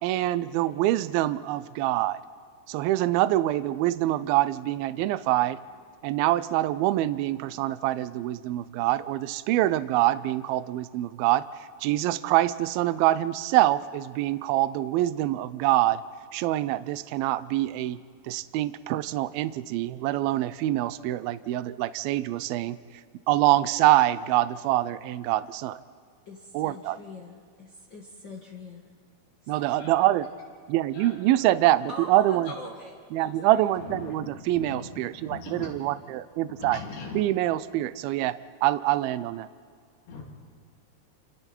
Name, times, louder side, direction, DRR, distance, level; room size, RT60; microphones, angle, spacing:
voice 1, 0.0-2.2 2.7-5.6 6.0-11.5 11.8-16.0 16.3-18.0 18.3-22.8 23.3-25.8 26.5-27.0 29.5-30.3 30.7-32.5 33.1-36.8 37.1-39.5, right 15 dB, 80° right, 14 dB, 2.2 m, -25 dB
voice 2, 26.2-28.8 29.4-29.9 31.9-33.7, left 1 dB, 45° left, -2 dB, 1.4 m, -44 dB
voice 3, 33.8-35.7 36.5-37.2 40.1-40.2, left 4 dB, 85° left, -1 dB, 5.5 m, -40 dB
28.0 x 28.0 x 4.5 m, 2.2 s
omnidirectional pair, 4.8 m